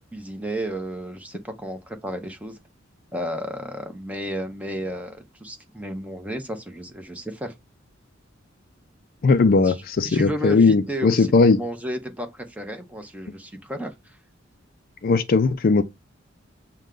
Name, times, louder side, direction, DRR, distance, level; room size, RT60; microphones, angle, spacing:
voice 1, 0.1-2.6 3.1-7.5 9.6-9.8 10.0-14.2, right 1 dB, 5° right, 0.8 m, -33 dB
voice 2, 9.2-11.6 15.0-15.8, left 4 dB, 50° left, 0.4 m, -18 dB
6.2 x 2.2 x 3.7 m
head